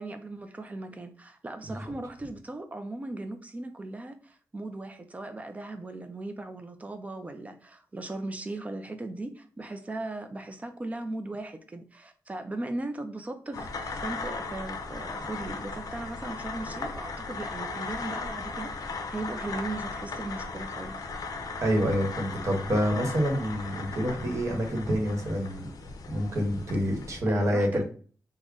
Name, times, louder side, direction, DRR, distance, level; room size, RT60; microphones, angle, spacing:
voice 1, 0.0-21.0 27.3-27.8, right 2 dB, 20° right, 7 dB, 0.4 m, -38 dB
sound 1, 13.5-27.2, left 3 dB, 70° left, 0.5 m, -37 dB
voice 2, 21.6-25.7 26.1-27.8, equal, 50° right, 1 dB, 1.0 m, -27 dB
3.7 x 2.1 x 3.5 m, 0.41 s
wide cardioid pair, 175°, 7 cm